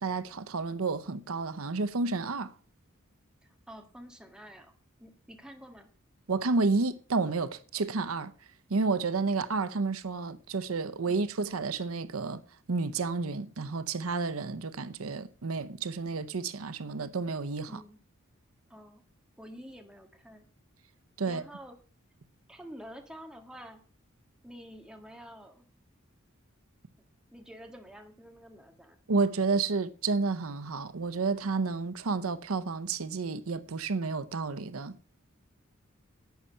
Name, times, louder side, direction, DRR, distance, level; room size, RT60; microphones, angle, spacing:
voice 1, 0.0-2.5 6.3-8.3 8.7-12.4 12.7-17.8 21.2-21.4 29.1-35.0, right 4 dB, 90° right, 0.8 m, -30 dB
voice 2, 3.4-4.7 5.0-5.9 17.7-18.0 18.7-19.0 19.4-20.5 21.3-21.7 22.5-23.8 24.4-25.6 27.3-29.0, equal, 5° right, 1.7 m, -48 dB
11.5 x 8.5 x 5.6 m
head